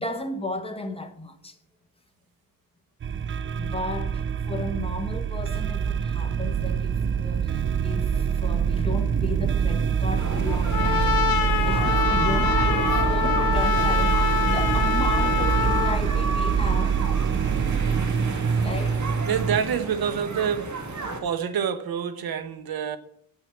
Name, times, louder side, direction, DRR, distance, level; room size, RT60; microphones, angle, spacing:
voice 1, 0.0-1.6 3.5-11.2 11.6-17.0 18.6-19.1, left 2 dB, 15° left, 1.3 m, -34 dB
sound 1, 3.0-19.6, right 7 dB, 35° right, 0.4 m, -25 dB
sound 2, 10.2-21.2, right 3 dB, 55° right, 2.0 m, -33 dB
Trumpet, 10.7-16.0, left 7 dB, 75° left, 1.2 m, -25 dB
voice 2, 19.2-20.7 21.2-23.0, right 8 dB, 90° right, 1.0 m, -27 dB
9.2 x 6.3 x 8.6 m
wide cardioid pair, 105°, 35 cm